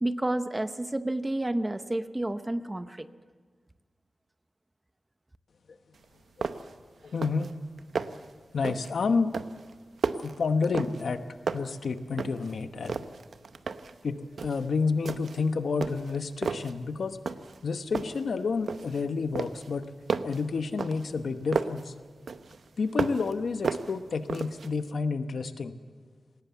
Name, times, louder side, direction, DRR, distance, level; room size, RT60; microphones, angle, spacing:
voice 1, 0.0-3.1, right 1 dB, 15° right, 11 dB, 0.8 m, -30 dB
sound 1, 6.0-6.1 6.4-6.8 7.1-7.5 7.8-8.3 8.6-9.0 9.3-11.2 11.5-12.5 12.8-14.0 14.4-14.7 15.1-15.5 15.8-16.8 17.3-17.6 17.9-19.0 19.4-21.9 22.3-23.3 23.6-24.7, right 5 dB, 85° right, 0.8 m, -33 dB
voice 2, 7.0-7.5 8.5-9.3 10.1-11.3 11.5-13.0 14.0-17.2 17.6-19.9 20.2-21.9 22.8-25.7, left 4 dB, 85° left, 9 dB, 1.0 m, -29 dB
20.5 x 18.5 x 8.2 m, 1.5 s
wide cardioid pair, 135°, 0 cm